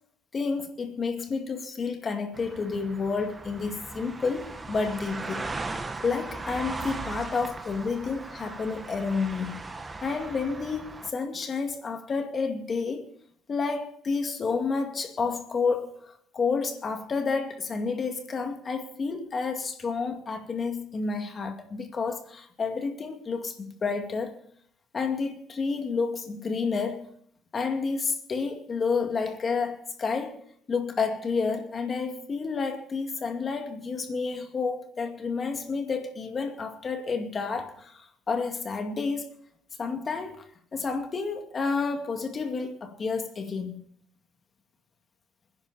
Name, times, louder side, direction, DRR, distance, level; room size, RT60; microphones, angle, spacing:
voice 1, 0.3-5.4 6.0-9.6 10.0-13.1 13.5-24.4 24.9-27.1 27.5-30.4 30.7-39.3 39.8-40.4 40.7-43.7, left 4 dB, 25° left, 2.2 m, -30 dB
sound 1, 2.3-11.1, right 3 dB, 15° right, 1.0 m, -38 dB
24.0 x 10.5 x 4.3 m
cardioid pair, 160°, 0 cm